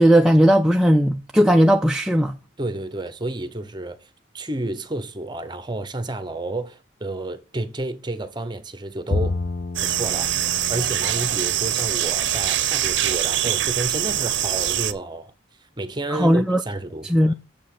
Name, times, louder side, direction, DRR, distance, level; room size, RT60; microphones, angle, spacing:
voice 1, 0.0-2.3 16.1-16.6 17.1-17.3, equal, 5° right, 0.3 m, -17 dB
voice 2, 2.6-4.1 4.3-9.4 9.8-15.3 15.8-17.3, right 2 dB, 25° right, 0.8 m, -31 dB
Bowed string instrument, 9.1-12.5, left 2 dB, 45° left, 0.6 m, -30 dB
sound 1, 9.8-14.9, right 12 dB, 70° right, 0.6 m, -23 dB
7.0 x 5.3 x 5.9 m
head